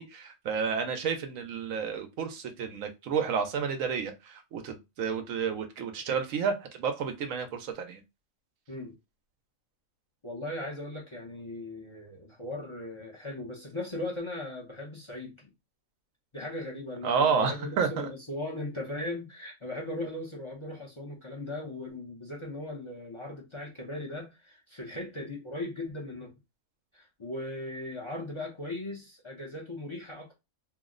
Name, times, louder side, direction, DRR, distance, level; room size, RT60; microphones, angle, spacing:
voice 1, 0.0-8.0 17.0-18.1, right 6 dB, 85° right, 1.0 m, -30 dB
voice 2, 10.2-15.5 16.3-26.3 26.9-30.4, left 1 dB, 30° left, 0.6 m, -38 dB
2.7 x 2.0 x 3.7 m
omnidirectional pair, 1.3 m